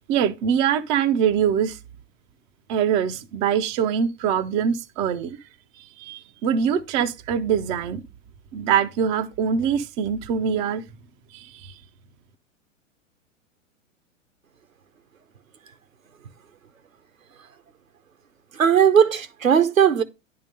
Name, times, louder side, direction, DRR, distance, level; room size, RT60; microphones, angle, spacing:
voice 1, 0.1-1.8 2.7-5.4 6.0-8.0 8.5-10.8 11.3-11.8, right 8 dB, 15° right, 0.4 m, -23 dB
voice 2, 18.5-20.0, right 8 dB, 80° right, 1.0 m, -17 dB
10.0 x 3.8 x 5.2 m
figure-of-eight pair, 95°, 40 cm